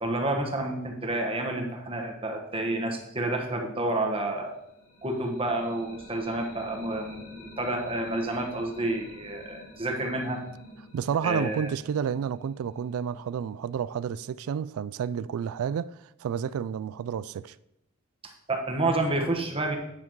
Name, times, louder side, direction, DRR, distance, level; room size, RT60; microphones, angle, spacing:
voice 1, 0.0-4.5 5.0-10.4 11.2-11.7 18.2-19.8, right 2 dB, 25° right, 1.3 m, -29 dB
sound 1, 4.5-14.3, left 1 dB, 80° left, 2.2 m, -50 dB
voice 2, 10.9-17.6, right 8 dB, 85° right, 0.3 m, -30 dB
9.5 x 5.9 x 4.6 m
head